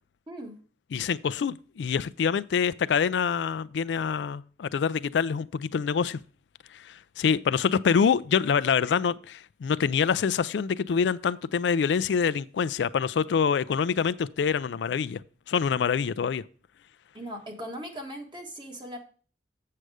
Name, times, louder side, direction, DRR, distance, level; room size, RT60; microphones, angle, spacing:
voice 1, 0.3-0.6 17.1-19.0, equal, 25° right, 1.5 m, -39 dB
voice 2, 0.9-6.2 6.7-16.4, left 6 dB, 85° left, 0.4 m, -26 dB
7.7 x 6.6 x 4.8 m
head